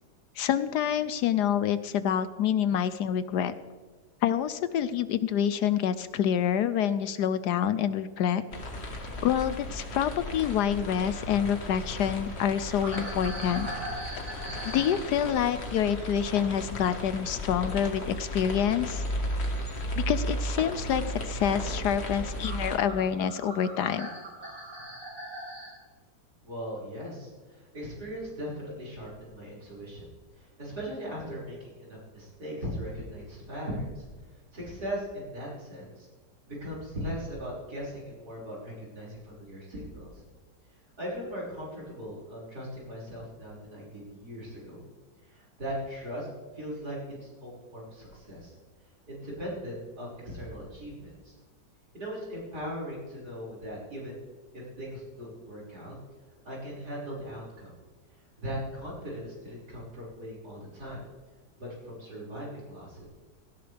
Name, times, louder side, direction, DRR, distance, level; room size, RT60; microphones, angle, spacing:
voice 1, 0.4-3.5 4.2-8.4 9.2-13.7 14.6-19.0 20.0-24.1, left 9 dB, 75° left, 13 dB, 1.1 m, -27 dB
sound 1, 8.5-22.8, equal, 35° left, 1.9 m, -35 dB
sound 2, 12.8-17.6 17.9-20.0 20.5-20.9 21.4-21.5 22.1-22.2 22.4-25.7, right 1 dB, 85° right, 5.0 m, -41 dB
voice 2, 26.4-30.1 30.4-34.1 34.5-36.1 36.5-40.2 41.0-44.8 45.2-46.3 46.5-48.5 49.1-51.3 51.9-54.2 54.5-55.9 56.4-57.7 58.4-61.0 61.6-63.0, equal, 60° right, -6 dB, 6.2 m, -39 dB
17.5 x 16.5 x 3.5 m, 1.4 s
omnidirectional pair, 1.9 m